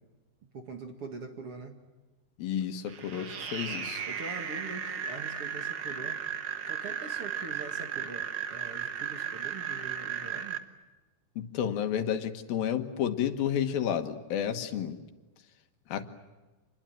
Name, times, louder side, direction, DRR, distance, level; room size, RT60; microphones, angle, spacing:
voice 1, 0.5-1.7 4.1-6.3 6.7-10.6, right 3 dB, 45° right, 5 dB, 2.4 m, -43 dB
voice 2, 2.4-4.0 11.4-15.0 15.9-16.0, left 9 dB, 75° left, 7 dB, 3.1 m, -31 dB
sound 1, 2.9-10.6, right 8 dB, 85° right, 0.9 m, -35 dB
27.0 x 21.0 x 9.0 m, 1.2 s
omnidirectional pair, 4.3 m